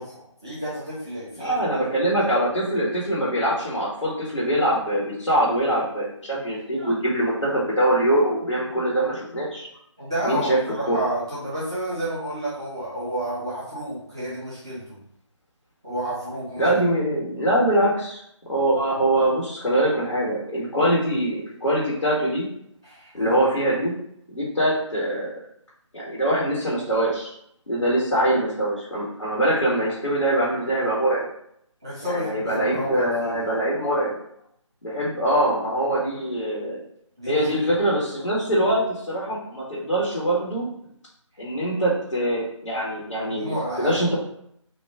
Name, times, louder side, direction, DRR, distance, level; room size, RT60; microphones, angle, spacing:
voice 1, 0.0-1.6 6.8-6.9 10.0-15.0 15.8-16.8 22.8-23.4 31.8-33.4 37.2-37.8 43.3-44.0, right 1 dB, 10° right, -12 dB, 0.4 m, -31 dB
voice 2, 1.4-9.7 10.2-10.6 10.9-11.0 16.6-18.2 18.5-22.5 23.1-23.9 24.3-25.3 25.9-27.3 27.7-31.2 32.0-34.1 34.8-36.8 37.3-40.7 41.4-44.2, right 1 dB, 75° left, -7 dB, 1.2 m, -23 dB
3.2 x 2.4 x 3.4 m, 0.72 s
figure-of-eight pair, 155°, 16 cm